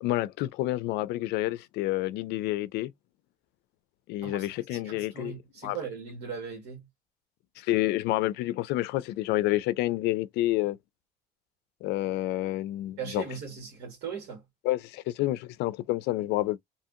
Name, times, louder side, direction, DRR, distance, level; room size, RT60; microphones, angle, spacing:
voice 1, 0.0-2.9 4.1-5.8 7.6-10.8 11.8-13.2 14.6-16.6, left 16 dB, 90° left, 0.4 m, -29 dB
voice 2, 4.2-6.9 13.0-14.4, right 6 dB, 90° right, 1.5 m, -39 dB
2.7 x 2.7 x 2.4 m
cardioid pair, 110°, 17 cm